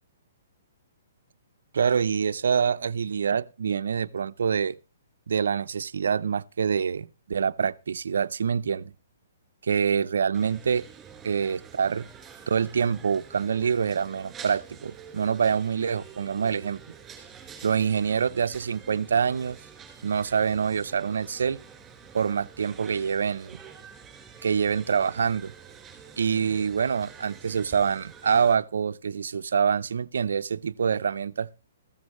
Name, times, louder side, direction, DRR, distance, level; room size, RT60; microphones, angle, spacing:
voice 1, 1.7-4.8 5.3-8.9 9.6-10.8 11.2-12.1 12.5-16.8 17.6-19.6 20.0-21.6 22.1-23.6 24.4-25.5 26.2-31.5, right 6 dB, 75° right, 0.6 m, -26 dB
sound 1, 10.3-28.5, right 7 dB, 15° right, 4.2 m, -47 dB
14.5 x 14.0 x 3.1 m
hypercardioid pair, 135°, 0 cm